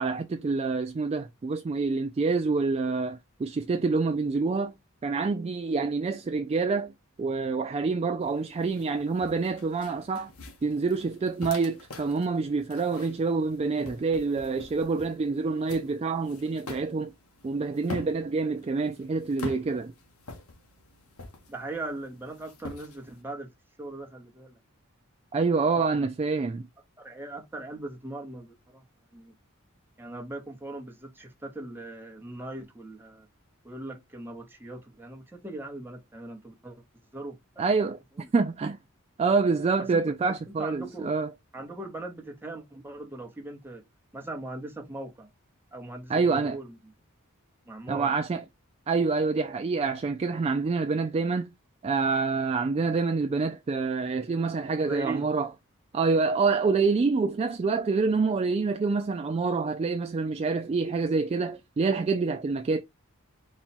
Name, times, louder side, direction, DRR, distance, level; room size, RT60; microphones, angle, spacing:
voice 1, 0.0-4.7 5.0-6.9 7.2-10.3 10.6-17.1 17.4-19.9 25.3-26.7 37.6-38.0 38.3-38.8 39.2-41.3 46.1-46.6 47.9-48.4 48.9-51.5 51.8-55.5 55.9-62.8, right 4 dB, 30° right, 0.3 m, -27 dB
sound 1, 8.2-23.2, left 3 dB, 85° left, 1.1 m, -45 dB
voice 2, 21.5-23.5 23.8-24.6 25.5-25.7 27.0-28.8 29.1-29.3 30.0-33.3 33.6-36.8 37.1-37.4 38.2-38.3 40.6-41.1 41.5-43.8 44.1-45.3 45.7-46.8 47.7-48.1 54.8-55.3, right 2 dB, 10° right, 0.9 m, -39 dB
4.2 x 2.2 x 4.2 m
head